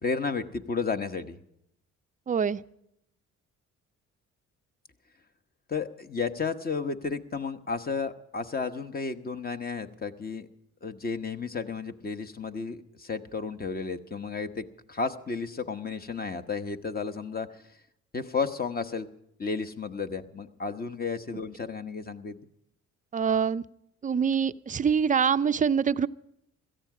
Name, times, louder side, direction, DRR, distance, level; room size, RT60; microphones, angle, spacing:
voice 1, 0.0-1.4 5.7-10.5 10.8-17.5 18.1-19.1 19.4-22.4, left 4 dB, 30° left, 8 dB, 1.0 m, -32 dB
voice 2, 2.3-2.6 23.1-23.6 24.0-26.1, right 7 dB, 25° right, 13 dB, 0.4 m, -25 dB
17.0 x 14.0 x 4.9 m, 0.78 s
cardioid pair, 90°, 30 cm